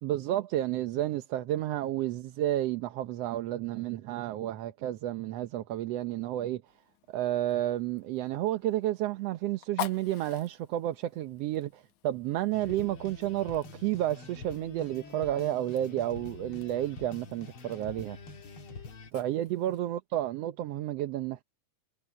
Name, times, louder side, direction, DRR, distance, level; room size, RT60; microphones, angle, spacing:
voice 1, 0.0-6.6 7.1-18.2 19.1-21.4, right 13 dB, 70° right, 1.7 m, -31 dB
Fire, 6.7-19.9, left 11 dB, 85° left, 2.8 m, -48 dB
sound 1, 12.5-19.1, left 4 dB, 50° left, 2.5 m, -46 dB
omnidirectional pair, 3.3 m